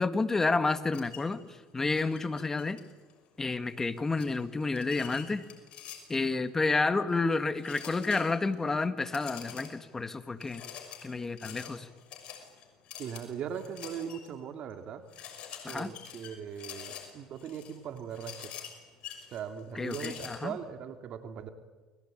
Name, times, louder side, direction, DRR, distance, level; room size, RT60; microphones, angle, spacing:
voice 1, 0.0-2.8 3.4-5.4 6.1-10.6 11.0-11.9 15.6-15.9 19.8-20.6, left 3 dB, 20° left, 10 dB, 1.9 m, -30 dB
sound 1, 0.9-1.3 1.9-3.1 4.2-6.3 7.6-8.5 9.0-9.9 10.4-14.3 14.7-14.8 15.1-20.4, left 9 dB, 55° left, 6.5 m, -46 dB
voice 2, 13.0-15.0 15.7-18.5 19.3-21.5, right 8 dB, 55° right, 7 dB, 2.7 m, -39 dB
29.0 x 22.0 x 9.2 m, 1.3 s
supercardioid pair, 100°, 2 cm